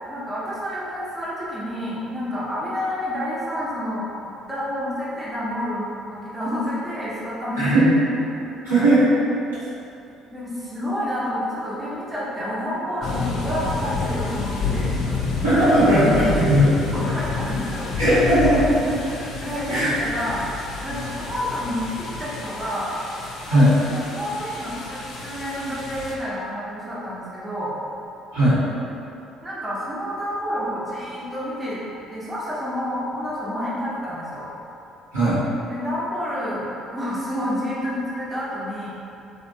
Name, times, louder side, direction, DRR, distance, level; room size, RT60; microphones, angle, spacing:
voice 1, 0.1-7.6 8.3-8.9 9.6-9.7 10.3-15.2 16.9-17.9 18.8-20.4 20.8-22.9 23.5-27.7 29.4-31.8 32.1-34.5 35.7-38.9, equal, 20° right, -8 dB, 1.0 m, -29 dB
voice 2, 7.6-7.9 8.6-9.1 15.4-16.7 18.0-18.7 19.7-19.9 23.5-23.7 28.3-28.6 35.1-35.4, right 1 dB, 90° right, -15 dB, 1.4 m, -17 dB
sound 1, 13.0-26.1, left 4 dB, 50° left, 0.6 m, -29 dB
3.4 x 2.7 x 2.7 m, 2.7 s
hypercardioid pair, 55°, 0 cm